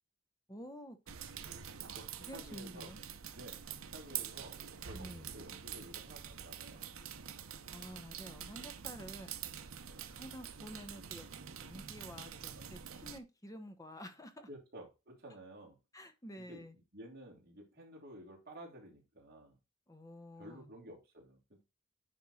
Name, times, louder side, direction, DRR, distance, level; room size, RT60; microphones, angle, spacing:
voice 1, 0.5-1.0 2.2-3.0 4.9-5.3 7.7-9.3 10.0-11.3 11.6-14.5 15.9-16.7 19.9-20.7, equal, 15° left, 1.0 m, -50 dB
sound 1, 1.1-13.2, right 9 dB, 70° right, 0.8 m, -46 dB
voice 2, 1.9-2.9 3.3-3.6 3.9-6.8 9.8-10.1 12.2-12.8 14.5-15.8 16.4-16.6 16.9-19.6 20.4-21.6, right 1 dB, 45° right, 3.1 m, -53 dB
9.7 x 3.5 x 4.2 m
head